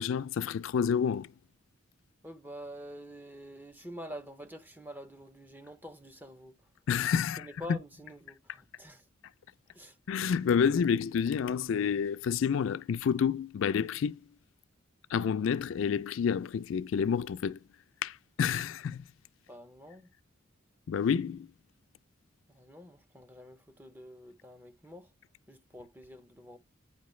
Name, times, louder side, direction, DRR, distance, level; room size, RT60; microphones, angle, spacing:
voice 1, 0.0-1.3 6.9-7.5 10.1-14.2 15.1-17.6 18.0-19.0 20.9-21.5, left 7 dB, 70° left, 0.3 m, -29 dB
voice 2, 2.2-6.6 7.4-9.0 9.7-10.0 19.5-20.1 22.5-25.1 25.5-26.6, equal, 10° right, 0.6 m, -47 dB
9.3 x 4.4 x 3.1 m
head